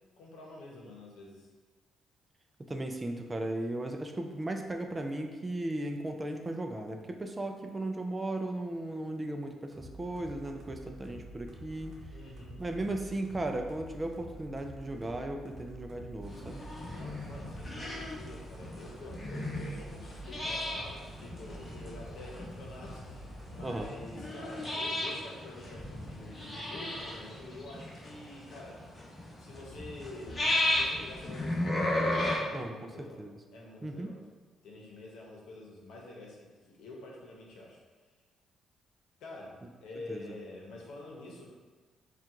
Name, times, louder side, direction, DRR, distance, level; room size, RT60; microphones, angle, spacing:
voice 1, 0.2-1.5 12.1-12.6 16.9-28.8 29.4-33.2 33.5-34.2 34.6-37.8 39.2-41.5, left 2 dB, 80° left, -1 dB, 0.9 m, -47 dB
voice 2, 2.7-11.9 12.6-16.6 23.6-23.9 32.5-32.7 33.2-33.4 33.8-34.1 40.1-40.3, right 1 dB, 20° right, 4 dB, 0.4 m, -36 dB
sound 1, 9.7-23.8, right 1 dB, 55° right, 0.8 m, -48 dB
sound 2, 16.2-32.4, left 1 dB, 30° left, 1.1 m, -35 dB
4.4 x 2.4 x 3.7 m, 1.3 s
cardioid pair, 90°, 0 cm